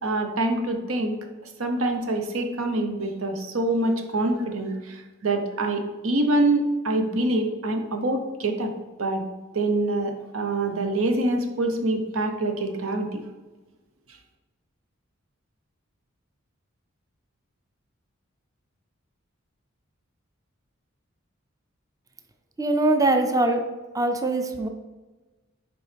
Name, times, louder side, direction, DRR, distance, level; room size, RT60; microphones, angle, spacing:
voice 1, 0.0-1.1 1.6-8.7 9.0-9.2 9.5-13.2, right 2 dB, 85° right, 5 dB, 0.8 m, -25 dB
voice 2, 22.6-23.6 23.9-24.7, right 2 dB, 15° right, 6 dB, 0.4 m, -22 dB
6.8 x 4.5 x 3.4 m, 1.2 s
head